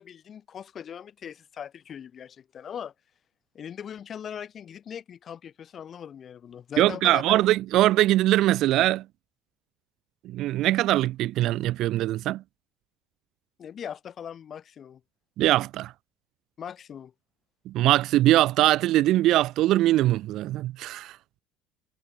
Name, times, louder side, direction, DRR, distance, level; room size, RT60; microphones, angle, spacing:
voice 1, 0.0-2.9 3.5-7.5 13.6-15.0 16.6-17.1, left 8 dB, 30° left, 5.5 m, -40 dB
voice 2, 6.8-9.0 10.2-12.4 15.4-15.9 17.7-21.2, right 15 dB, 45° right, 0.9 m, -22 dB
cardioid pair, 170°, 0 cm